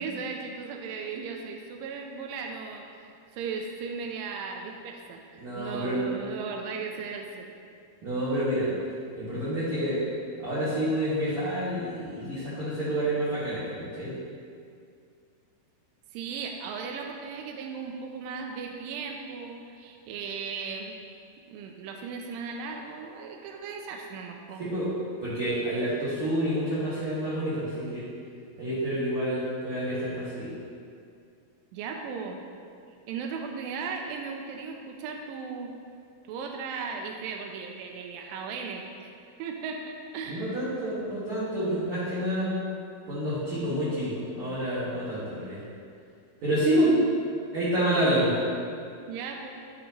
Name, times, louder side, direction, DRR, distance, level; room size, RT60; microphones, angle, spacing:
voice 1, 0.0-7.5 16.1-21.0 21.5-24.6 31.7-32.4 33.1-35.8 36.3-39.1 39.4-40.5 49.1-49.5, right 5 dB, 80° right, 2 dB, 2.1 m, -37 dB
voice 2, 5.4-6.0 8.0-8.7 9.1-10.0 10.4-14.1 24.7-24.9 25.2-28.0 28.6-30.5 40.3-42.6 43.1-45.6 46.4-47.0 47.5-48.3, right 1 dB, 45° right, -13 dB, 2.3 m, -28 dB
14.0 x 4.8 x 3.0 m, 2.3 s
omnidirectional pair, 4.5 m